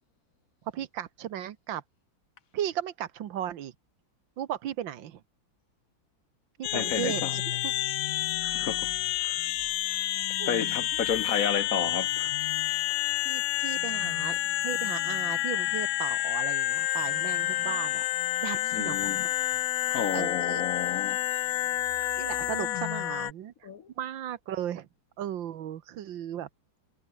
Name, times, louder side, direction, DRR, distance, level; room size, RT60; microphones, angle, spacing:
voice 1, 0.7-1.8 2.5-3.7 4.4-5.2 6.6-7.7 10.4-10.7 13.3-14.4 14.6-18.0 18.4-19.3 19.9-20.6 22.2-23.5 24.0-24.9 25.2-26.5, right 10 dB, 80° right, 1.8 m, -36 dB
sound 1, 6.6-23.3, left 15 dB, 85° left, 0.7 m, -29 dB
voice 2, 6.7-7.4 8.4-8.9 9.2-9.4 10.5-12.5 18.7-19.3 19.9-21.2 23.6-23.9, left 7 dB, 55° left, 1.2 m, -31 dB
omnidirectional pair, 2.0 m